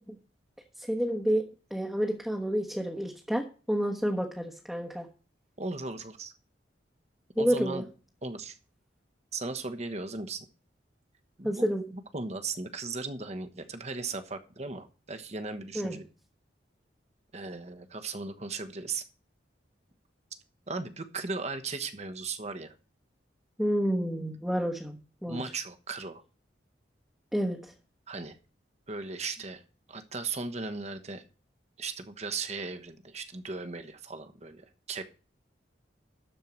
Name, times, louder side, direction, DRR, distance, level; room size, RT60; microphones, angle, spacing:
voice 1, 0.8-5.1 7.4-7.8 11.4-11.8 15.7-16.0 23.6-25.4 27.3-27.7, equal, ahead, 1 dB, 1.2 m, -29 dB
voice 2, 5.6-6.3 7.4-7.9 8.2-8.5 9.3-10.4 11.4-16.1 17.3-19.0 20.7-22.7 25.3-26.2 28.1-28.4 28.9-29.6 29.9-31.2 31.8-35.1, right 3 dB, 35° right, 8 dB, 1.2 m, -37 dB
12.5 x 4.7 x 7.4 m, 0.36 s
head